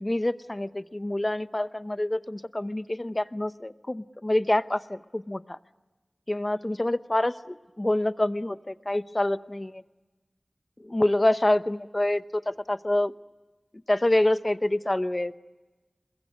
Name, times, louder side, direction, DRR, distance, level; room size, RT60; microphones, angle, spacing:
voice 1, 0.0-5.6 6.3-9.8 10.8-13.1 13.9-15.4, left 1 dB, 30° left, 13 dB, 0.8 m, -26 dB
28.0 x 22.0 x 9.7 m, 1.2 s
wide cardioid pair, 65°, 0 cm